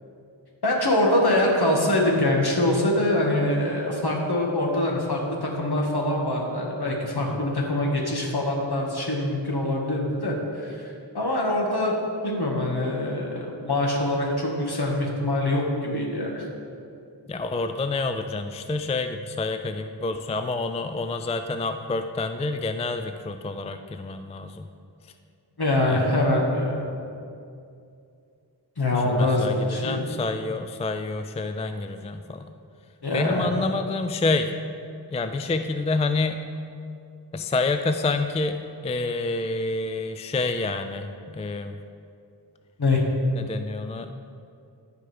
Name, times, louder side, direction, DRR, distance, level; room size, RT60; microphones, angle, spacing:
voice 1, 0.6-11.9 12.2-16.5 25.6-26.8 28.8-30.0 33.0-33.5 42.8-43.0, left 1 dB, 60° left, -1 dB, 1.6 m, -24 dB
voice 2, 17.3-24.7 25.8-26.1 29.1-32.5 33.1-34.5 35.1-36.5 37.3-41.7 43.3-44.1, left 3 dB, 15° left, 8 dB, 0.3 m, -28 dB
14.0 x 4.9 x 3.4 m, 2.5 s
cardioid pair, 45°, 44 cm